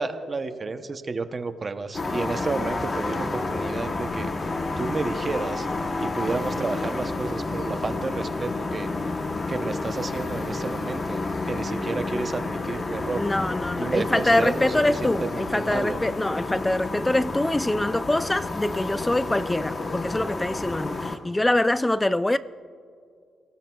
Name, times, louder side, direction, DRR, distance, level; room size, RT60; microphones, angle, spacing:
voice 1, 0.0-5.7 6.0-8.9 9.5-11.2 11.5-13.2 13.8-16.0, right 4 dB, 30° right, 0.7 m, -31 dB
sound 1, 1.9-21.2, left 3 dB, 30° left, 0.9 m, -30 dB
voice 2, 13.1-22.4, left 1 dB, 10° left, 0.4 m, -24 dB
29.5 x 18.0 x 2.3 m
cardioid pair, 140°, 0 cm